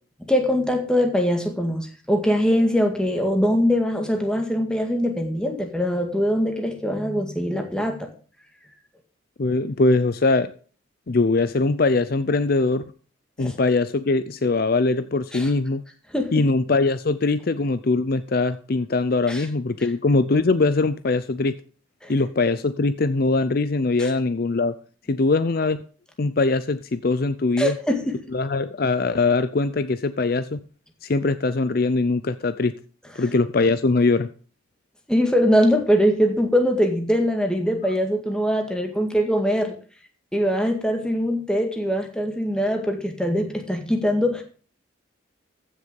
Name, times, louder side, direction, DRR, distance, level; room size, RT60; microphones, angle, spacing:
voice 1, 0.3-8.1 13.4-13.6 15.3-15.5 16.1-16.4 19.3-19.5 22.0-22.1 24.0-24.1 27.6-28.2 35.1-39.7 40.3-44.4, equal, 5° left, 3 dB, 1.9 m, -22 dB
voice 2, 9.4-10.5 11.1-12.8 13.4-15.8 16.3-21.5 22.1-24.7 25.1-25.8 26.2-27.7 28.3-30.6 31.0-32.7 33.2-34.3, left 3 dB, 45° left, 13 dB, 0.5 m, -22 dB
15.0 x 6.7 x 5.3 m, 0.41 s
head